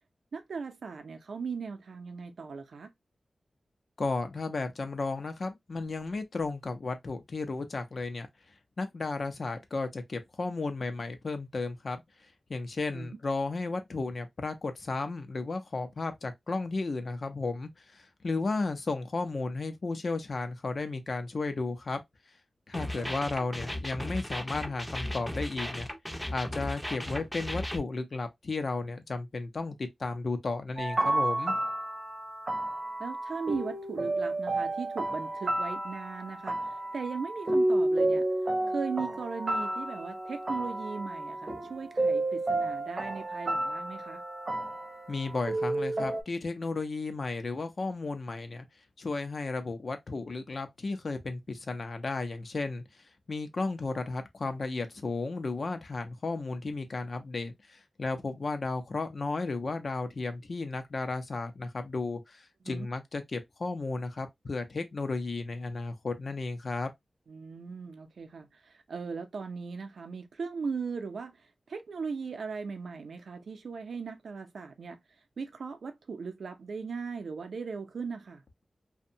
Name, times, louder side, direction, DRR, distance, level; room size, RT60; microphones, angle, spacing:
voice 1, 0.3-2.9 12.9-13.2 22.8-23.2 31.4-31.5 33.0-38.2 38.7-44.2 62.6-62.9 67.3-71.4 71.7-75.0 75.4-78.4, right 5 dB, 85° right, 0.5 m, -38 dB
voice 2, 4.0-8.3 8.8-12.0 12.5-22.0 22.7-25.9 26.3-31.6 45.1-48.7 49.0-52.8 53.3-66.9, left 3 dB, 55° left, 0.5 m, -34 dB
sound 1, 22.7-27.8, left 1 dB, 10° left, 0.5 m, -36 dB
sound 2, 30.8-46.2, right 2 dB, 35° right, 0.6 m, -31 dB
2.6 x 2.1 x 2.6 m
wide cardioid pair, 110°, 0 cm